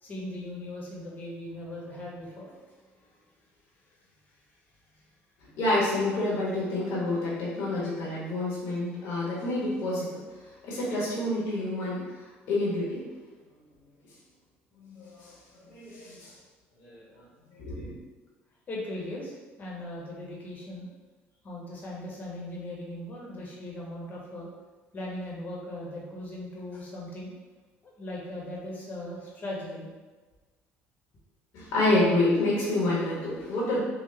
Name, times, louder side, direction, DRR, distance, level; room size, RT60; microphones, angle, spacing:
voice 1, 0.0-2.7 18.7-20.9 21.4-24.5 24.9-27.3 27.8-29.9, left 1 dB, 40° left, -4 dB, 1.1 m, -39 dB
voice 2, 5.5-10.2 10.6-12.0 12.5-13.0 14.8-15.3 15.7-16.3 16.8-17.0 17.6-17.9 31.5-33.8, left 2 dB, 70° left, -6 dB, 1.3 m, -28 dB
3.9 x 2.3 x 3.3 m, 1.3 s
cardioid pair, 100°, 5 cm